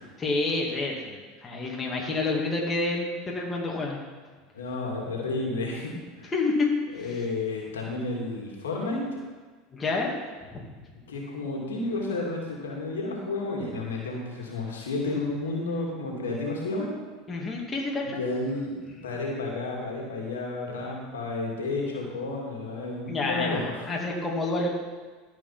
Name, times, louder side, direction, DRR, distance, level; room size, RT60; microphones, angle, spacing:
voice 1, 0.2-4.0 6.3-7.3 9.7-10.1 10.5-10.6 17.3-18.2 23.1-24.7, left 3 dB, 25° left, -1 dB, 2.4 m, -28 dB
voice 2, 4.5-6.3 6.9-9.0 11.1-16.9 18.0-23.8, left 2 dB, 85° left, -1 dB, 2.3 m, -31 dB
14.0 x 5.2 x 5.8 m, 1.4 s
hypercardioid pair, 80°, 0 cm